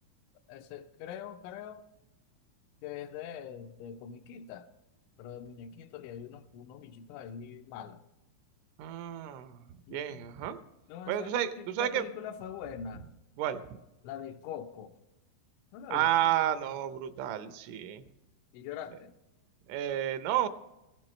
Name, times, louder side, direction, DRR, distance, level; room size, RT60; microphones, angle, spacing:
voice 1, 0.5-1.8 2.8-4.7 5.2-8.0 9.9-10.3 10.9-13.1 14.0-14.9 15.7-16.3 18.5-19.1, left 8 dB, 80° left, 8 dB, 3.0 m, -43 dB
voice 2, 8.8-10.6 11.1-12.0 13.4-13.6 15.9-18.0 19.7-20.5, right 11 dB, 80° right, 10 dB, 3.1 m, -31 dB
17.0 x 15.0 x 3.2 m, 0.95 s
omnidirectional pair, 5.6 m